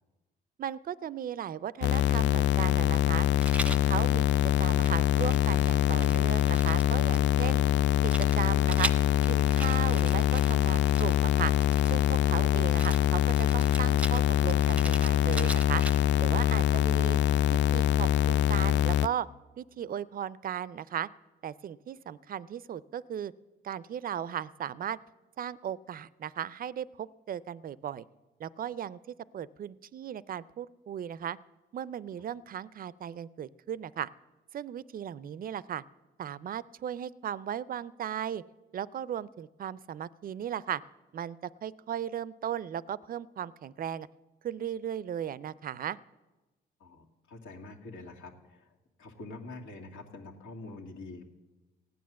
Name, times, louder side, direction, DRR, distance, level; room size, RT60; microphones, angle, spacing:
voice 1, 0.6-3.3 3.6-4.3 4.6-7.6 8.0-8.9 9.3-11.5 11.9-15.8 16.2-17.2 17.5-19.3 19.6-21.1 21.4-23.3 23.6-25.0 25.4-28.0 28.4-31.4 31.7-34.1 34.5-35.8 36.2-38.4 38.7-40.8 41.1-44.1 44.4-46.0, right 9 dB, 45° right, 20 dB, 0.5 m, -36 dB
sound 1, 1.8-19.1, left 12 dB, 65° left, 0.5 m, -24 dB
Rattle, 3.4-3.9 4.5-7.2 8.1-12.1 12.8-16.2, right 1 dB, 5° right, 0.7 m, -40 dB
voice 2, 46.8-48.7 49.0-51.3, left 2 dB, 85° left, 0 dB, 2.2 m, -46 dB
15.5 x 9.5 x 7.5 m, 1.1 s
cardioid pair, 90°, 20 cm